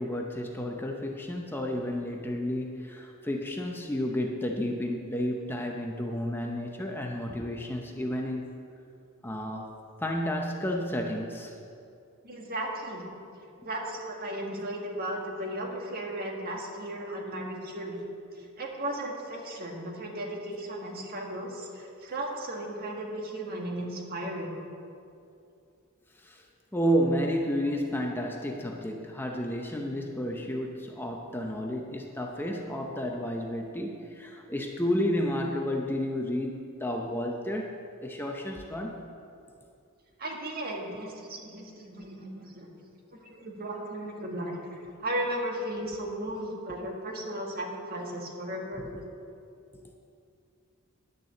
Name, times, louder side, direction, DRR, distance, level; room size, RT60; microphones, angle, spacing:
voice 1, 0.0-8.4 9.2-9.7 10.0-11.6 26.2-26.4 26.7-37.8 38.0-39.1 46.8-46.9 48.8-49.0, equal, 10° left, 1 dB, 0.7 m, -31 dB
voice 2, 12.2-13.1 13.4-18.0 18.3-24.6 40.2-42.7 43.2-44.6 45.0-48.9, right 1 dB, 45° right, 0 dB, 1.7 m, -35 dB
10.5 x 6.7 x 7.6 m, 2.6 s
head